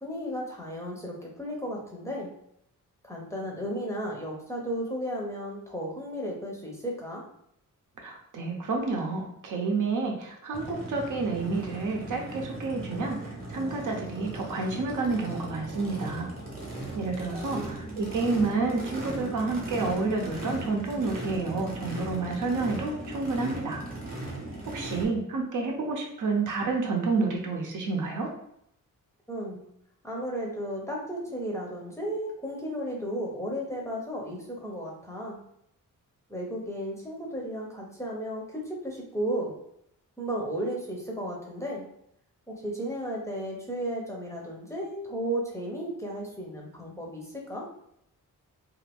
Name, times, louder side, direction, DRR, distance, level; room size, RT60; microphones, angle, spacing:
voice 1, 0.0-2.3 3.0-7.3 17.3-17.7 29.3-29.6 30.0-35.4 36.3-39.5 40.2-41.8 42.5-47.7, equal, 10° left, -2 dB, 0.6 m, -34 dB
voice 2, 8.0-16.3 16.9-23.8 24.7-28.3, right 3 dB, 70° right, 1 dB, 0.7 m, -29 dB
Race car auto racing / Idling / Accelerating revving vroom, 10.5-25.0, right 1 dB, 25° right, 0.8 m, -38 dB
2.5 x 2.4 x 3.4 m, 0.74 s
wide cardioid pair, 150°, 33 cm